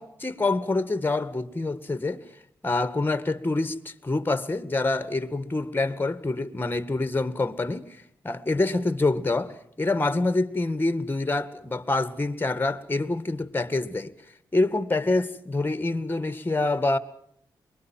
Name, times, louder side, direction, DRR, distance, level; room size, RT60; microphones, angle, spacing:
voice 1, 0.0-2.2 2.6-7.9 8.2-14.1 14.5-17.0, left 2 dB, 25° left, 1.9 m, -26 dB
23.5 x 22.0 x 7.4 m
supercardioid pair, 40°, 9 cm